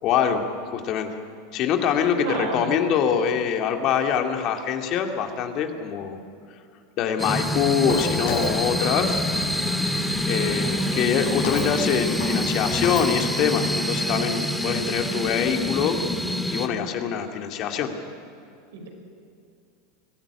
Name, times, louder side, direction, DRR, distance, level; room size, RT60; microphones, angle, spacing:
voice 1, 0.0-0.5 0.7-1.1 1.5-6.2 7.0-9.3 10.3-16.0 16.5-17.9, left 8 dB, 50° left, 4 dB, 2.2 m, -24 dB
voice 2, 2.2-2.8 10.3-10.6 18.7-18.9, right 3 dB, 70° right, 2 dB, 5.5 m, -31 dB
sound 1, 7.2-16.7, left 1 dB, 5° left, 2.0 m, -26 dB
Walk footsteps, 7.9-13.2, left 3 dB, 65° left, 5.9 m, -36 dB
23.0 x 14.5 x 9.9 m, 2.4 s
hypercardioid pair, 85°, 0 cm